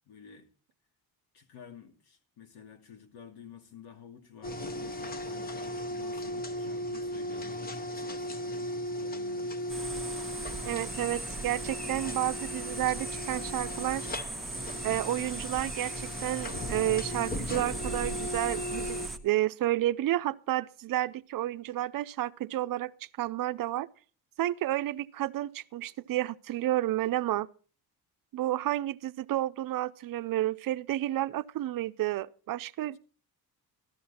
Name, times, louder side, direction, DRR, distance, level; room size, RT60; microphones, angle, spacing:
voice 1, 0.1-0.5 1.3-9.7, left 7 dB, 80° left, 2.5 m, -51 dB
sound 1, 4.4-19.1, left 1 dB, 25° left, 0.9 m, -37 dB
sound 2, 9.7-19.2, right 2 dB, ahead, 1.3 m, -38 dB
voice 2, 10.7-14.1 14.8-22.9 23.2-23.9 24.4-27.5 28.3-33.0, right 14 dB, 60° right, 0.6 m, -31 dB
13.5 x 13.0 x 4.2 m
cardioid pair, 135°, 38 cm